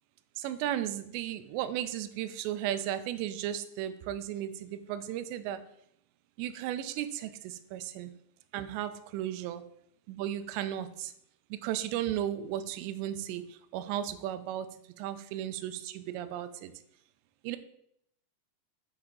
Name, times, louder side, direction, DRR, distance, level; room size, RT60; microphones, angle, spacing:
voice 1, 0.4-5.6 6.4-8.1 8.5-9.6 10.1-11.1 11.5-14.7 15.0-16.7 17.4-17.6, right 11 dB, 85° right, 11 dB, 2.6 m, -35 dB
8.0 x 4.3 x 3.7 m, 0.72 s
omnidirectional pair, 5.2 m